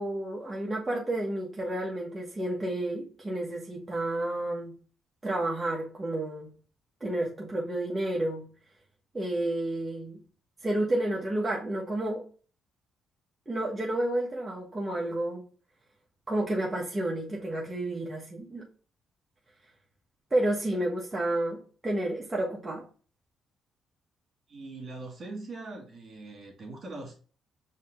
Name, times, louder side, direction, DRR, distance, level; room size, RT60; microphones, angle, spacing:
voice 1, 0.0-4.7 5.2-6.5 7.0-8.4 9.1-10.2 10.6-12.2 13.5-15.4 16.3-18.6 20.3-22.8, right 1 dB, 20° right, 1.1 m, -30 dB
voice 2, 24.5-27.1, right 2 dB, 50° right, 2.0 m, -41 dB
4.9 x 2.8 x 3.6 m
cardioid pair, 90°, 0 cm